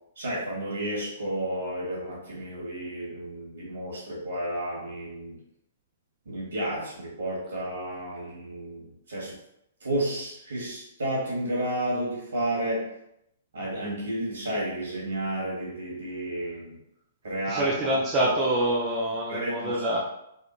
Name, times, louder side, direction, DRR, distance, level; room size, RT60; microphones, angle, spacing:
voice 1, 0.2-5.4 6.2-9.4 9.8-12.9 13.5-16.7 17.2-18.0 19.3-20.0, right 1 dB, 75° right, -5 dB, 1.4 m, -32 dB
voice 2, 17.5-20.0, right 1 dB, 25° right, -4 dB, 0.6 m, -26 dB
3.6 x 2.4 x 2.3 m, 0.79 s
figure-of-eight pair, 120°, 0 cm